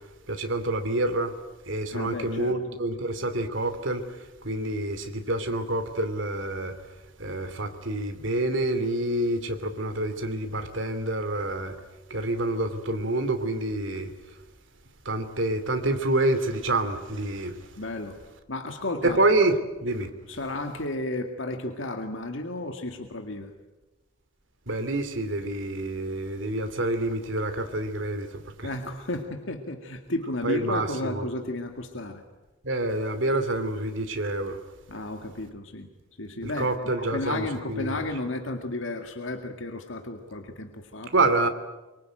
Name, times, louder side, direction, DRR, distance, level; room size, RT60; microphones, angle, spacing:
voice 1, 0.3-1.3 1.7-4.0 4.4-6.7 7.2-11.7 12.1-14.1 15.0-17.6 19.0-20.1 24.7-28.4 30.4-31.2 32.6-34.6 36.4-38.0 41.1-41.5, right 2 dB, 70° right, 2.8 m, -27 dB
voice 2, 1.9-2.6 17.8-18.2 18.5-19.2 20.3-23.5 28.6-32.2 34.9-35.9 36.2-41.3, left 2 dB, 75° left, 2.1 m, -33 dB
24.5 x 24.5 x 9.2 m
head